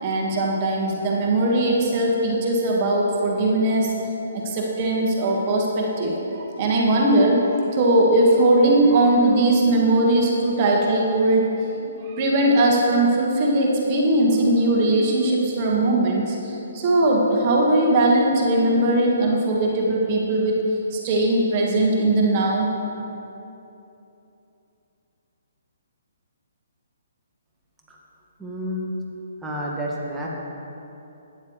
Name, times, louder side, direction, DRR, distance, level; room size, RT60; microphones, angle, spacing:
voice 1, 0.0-3.9 4.3-11.4 11.8-20.5 20.9-22.7, right 1 dB, 40° right, -2 dB, 1.5 m, -20 dB
voice 2, 28.4-28.9 29.4-30.3, equal, 10° right, -4 dB, 1.6 m, -30 dB
12.5 x 9.6 x 3.1 m, 2.9 s
figure-of-eight pair, 135°, 0 cm